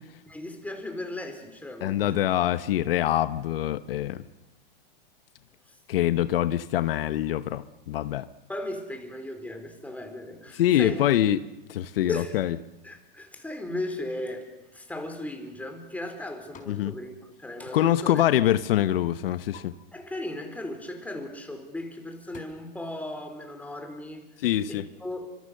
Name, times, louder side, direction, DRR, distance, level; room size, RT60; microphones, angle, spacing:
voice 1, 0.3-2.1 5.7-5.8 8.5-11.2 12.1-12.4 12.8-18.2 19.9-24.2 24.7-25.4, left 1 dB, 5° left, 5 dB, 4.6 m, -37 dB
voice 2, 1.8-4.2 5.9-8.3 10.5-11.4 11.7-12.6 16.7-16.9 17.7-19.7 24.4-24.9, left 12 dB, 75° left, 13 dB, 1.0 m, -24 dB
sound 1, 16.5-16.9 17.2-17.9 18.2-18.6 19.0-19.6 21.4-21.6 22.0-22.4, left 8 dB, 25° left, 4.7 m, -52 dB
30.0 x 25.5 x 6.6 m, 1.0 s
hypercardioid pair, 120°, 29 cm